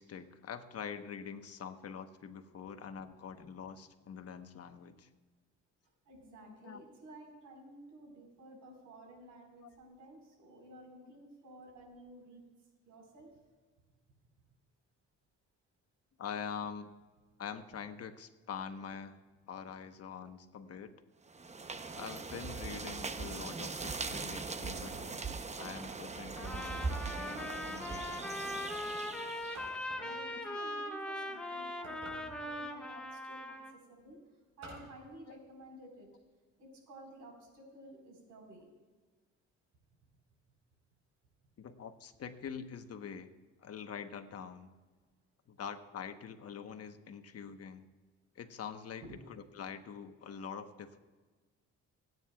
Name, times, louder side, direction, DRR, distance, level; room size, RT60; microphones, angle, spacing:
voice 1, 0.0-5.1 6.6-6.8 9.6-9.8 16.2-16.9 17.4-19.2 19.5-20.9 22.0-24.9 25.5-28.3 30.3-30.6 31.9-32.0 32.7-33.1 35.3-35.4 41.6-43.3 43.6-44.7 45.5-47.9 48.3-51.0, left 7 dB, 55° left, 8 dB, 1.1 m, -45 dB
voice 2, 6.1-12.4 12.8-13.3 29.9-34.2 34.6-36.1 36.6-38.7 49.0-49.2, right 1 dB, 85° right, 1 dB, 4.6 m, -53 dB
sound 1, 21.3-29.7, right 4 dB, 25° right, 0.8 m, -40 dB
sound 2, 24.7-25.4 26.8-27.5 29.5-30.2 31.8-32.6 34.6-35.0, right 2 dB, 65° right, 4.6 m, -51 dB
Trumpet, 26.4-33.7, left 1 dB, 5° left, 1.6 m, -40 dB
27.0 x 9.4 x 2.4 m, 1.4 s
cardioid pair, 90°, 30 cm